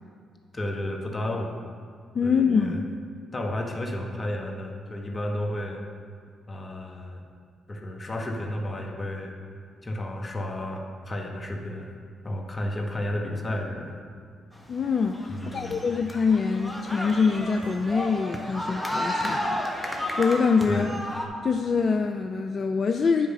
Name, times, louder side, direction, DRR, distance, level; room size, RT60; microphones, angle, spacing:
voice 1, 0.5-1.5 2.2-2.8 3.3-5.8 6.5-7.2 7.7-9.3 9.8-12.0 12.2-14.0 15.3-15.8 20.6-21.0, left 1 dB, 35° left, 2 dB, 1.3 m, -32 dB
voice 2, 2.1-2.9 14.7-21.0 21.4-23.3, left 5 dB, 50° left, 6 dB, 0.4 m, -25 dB
sound 1, 14.6-21.3, equal, 5° left, 1.4 m, -32 dB
9.5 x 4.9 x 5.5 m, 2.1 s
hypercardioid pair, 45°, 0 cm